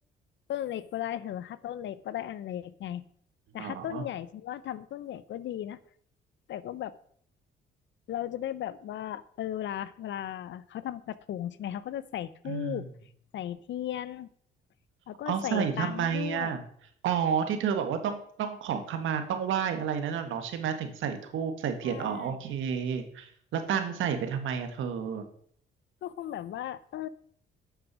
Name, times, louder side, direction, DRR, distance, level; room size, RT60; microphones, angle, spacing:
voice 1, 0.5-3.0 3.5-5.8 6.5-7.0 8.1-12.9 13.3-14.3 15.1-16.6 21.8-22.4 26.0-27.1, left 11 dB, 70° left, 16 dB, 0.7 m, -36 dB
voice 2, 3.6-4.0 12.5-12.8 15.3-16.6 17.0-25.3, right 7 dB, 80° right, 7 dB, 1.6 m, -30 dB
9.0 x 6.3 x 6.1 m, 0.63 s
cardioid pair, 90°, 20 cm